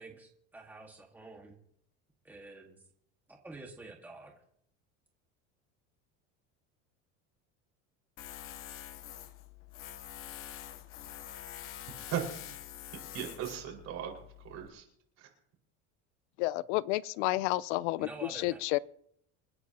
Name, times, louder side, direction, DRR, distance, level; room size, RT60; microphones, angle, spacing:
voice 1, 0.0-1.6 2.2-2.8 3.3-4.3 18.0-18.6, right 2 dB, 5° right, 1.7 m, -48 dB
Tools, 8.2-14.7, left 11 dB, 40° left, 1.0 m, -46 dB
voice 2, 13.1-14.8 15.2-15.3, right 10 dB, 50° right, 5.2 m, -37 dB
voice 3, 16.4-18.8, left 18 dB, 80° left, 0.6 m, -31 dB
28.5 x 10.0 x 2.9 m
cardioid pair, 155°, 34 cm